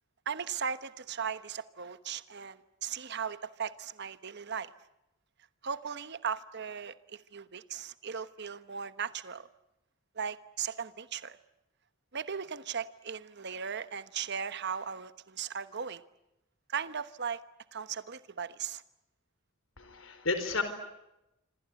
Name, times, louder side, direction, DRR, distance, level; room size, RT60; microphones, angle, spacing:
voice 1, 0.2-4.7 5.6-9.5 10.1-11.4 12.1-16.0 16.7-17.4 17.7-18.8, right 7 dB, 55° right, 1.2 m, -37 dB
voice 2, 19.8-20.6, left 3 dB, 80° left, 4.4 m, -32 dB
26.5 x 26.0 x 8.3 m
head